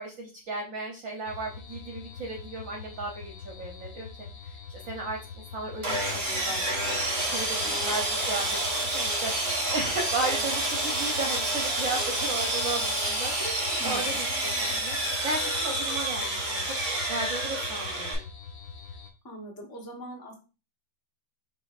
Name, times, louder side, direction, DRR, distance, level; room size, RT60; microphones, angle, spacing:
voice 1, 0.0-4.1 4.4-6.9 7.3-8.5 8.9-15.0 15.2-18.3, right 2 dB, 60° right, 1 dB, 1.0 m, -35 dB
sound 1, 1.2-19.1, left 5 dB, 60° left, 0.8 m, -44 dB
Sawing, 5.8-18.1, right 1 dB, 30° right, 1.1 m, -29 dB
voice 2, 7.5-7.8 13.8-14.1 18.9-19.0 19.2-20.3, right 1 dB, 15° left, 0 dB, 0.7 m, -42 dB
4.9 x 3.8 x 2.4 m, 0.32 s
omnidirectional pair, 1.9 m